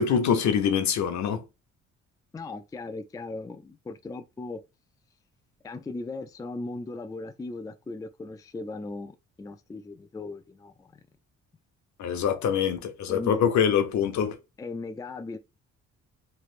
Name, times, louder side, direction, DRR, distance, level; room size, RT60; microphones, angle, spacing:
voice 1, 0.0-1.4 12.0-14.4, left 7 dB, 70° left, 0.8 m, -24 dB
voice 2, 2.3-4.6 5.6-11.0 13.1-13.4 14.6-15.4, left 3 dB, 10° left, 0.3 m, -38 dB
3.2 x 3.0 x 2.4 m
cardioid pair, 90°, 30 cm